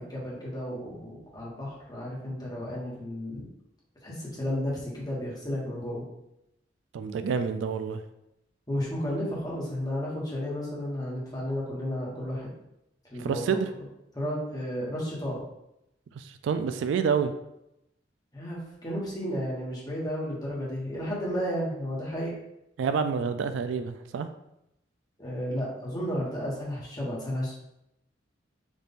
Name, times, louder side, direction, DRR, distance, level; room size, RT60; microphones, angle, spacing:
voice 1, 0.0-3.5 4.0-6.0 8.7-12.5 13.1-13.6 14.1-15.4 18.3-22.3 25.2-27.5, equal, 20° left, -5 dB, 1.2 m, -33 dB
voice 2, 6.9-8.0 13.2-13.7 16.2-17.3 22.8-24.3, right 6 dB, 80° right, 9 dB, 0.3 m, -28 dB
4.1 x 2.5 x 3.5 m, 0.85 s
head